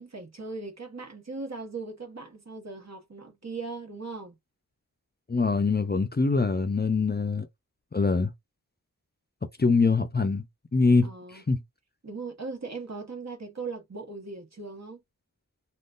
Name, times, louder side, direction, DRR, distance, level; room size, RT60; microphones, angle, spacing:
voice 1, 0.0-4.4 11.0-11.4 12.0-15.0, right 4 dB, 50° right, 1.2 m, -39 dB
voice 2, 5.3-7.5 7.9-8.3 9.6-10.4 10.7-11.1 11.5-11.6, left 4 dB, 30° left, 0.5 m, -23 dB
3.6 x 2.3 x 2.4 m
wide cardioid pair, 50°, 34 cm